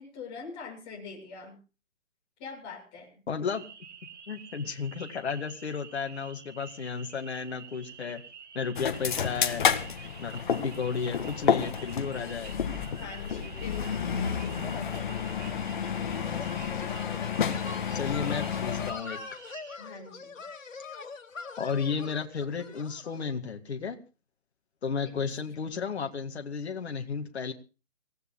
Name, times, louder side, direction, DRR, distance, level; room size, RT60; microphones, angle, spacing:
voice 1, 0.0-1.6 2.4-3.1 13.0-15.3 19.8-20.4 25.0-25.3 25.6-25.9, left 4 dB, 20° left, 0 dB, 6.6 m, -44 dB
voice 2, 3.3-3.7 4.3-8.2 8.5-9.7 10.2-12.6 17.9-19.4 21.6-24.0 24.8-27.5, left 5 dB, 55° left, 4 dB, 2.1 m, -33 dB
sound 1, 3.5-19.8, right 7 dB, 60° right, 3.3 m, -49 dB
sound 2, 8.8-18.9, left 7 dB, 40° left, 1.8 m, -30 dB
sound 3, 15.2-23.4, left 4 dB, 85° left, 2.5 m, -43 dB
27.5 x 15.5 x 2.3 m, 0.34 s
hypercardioid pair, 160°, 38 cm